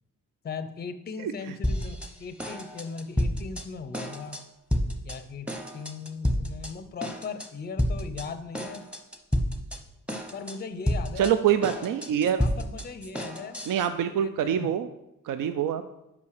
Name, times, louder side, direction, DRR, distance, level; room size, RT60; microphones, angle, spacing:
voice 1, 0.4-4.4 5.0-8.9 10.3-11.9 12.4-13.6 14.0-14.7, left 5 dB, 30° left, 12 dB, 0.5 m, -39 dB
sound 1, 1.6-2.1 2.4-3.6 3.9-4.4 4.7-5.2 5.5-6.7 7.0-7.5 7.8-8.3 8.5-9.8 10.1-10.6 10.9-13.9, equal, 5° right, 0.8 m, -29 dB
voice 2, 11.2-12.4 13.7-14.9 15.2-15.8, right 9 dB, 75° right, 11 dB, 0.5 m, -25 dB
5.6 x 5.2 x 6.5 m, 0.89 s
wide cardioid pair, 125°, 32 cm